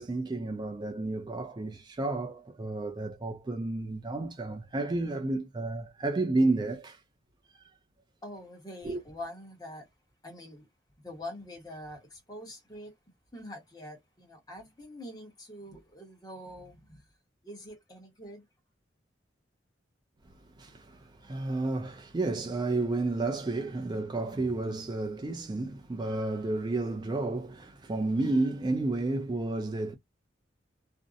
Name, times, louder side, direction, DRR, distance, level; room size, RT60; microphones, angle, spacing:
voice 1, 0.0-7.0 8.8-9.0 20.6-29.9, right 2 dB, 25° right, 0.3 m, -31 dB
voice 2, 8.2-9.9 10.2-10.7 11.0-12.9 13.3-17.0 17.4-18.4 26.3-26.7, left 1 dB, 20° left, 0.9 m, -45 dB
2.6 x 2.0 x 2.4 m
head